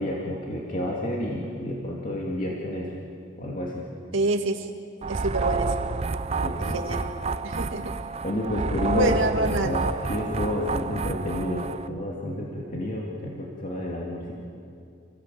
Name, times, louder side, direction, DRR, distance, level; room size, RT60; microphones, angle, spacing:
voice 1, 0.0-2.9 3.4-3.8 6.4-6.8 8.2-9.2 9.6-9.8 10.1-14.3, left 1 dB, 40° left, -3 dB, 2.5 m, -30 dB
voice 2, 4.1-4.7 5.1-5.7 6.6-7.0 7.4-7.9 8.9-9.8, right 1 dB, 65° right, 4 dB, 2.1 m, -26 dB
sound 1, 5.0-11.9, right 4 dB, 30° right, 0.5 m, -29 dB
29.5 x 16.5 x 7.8 m, 2.5 s
head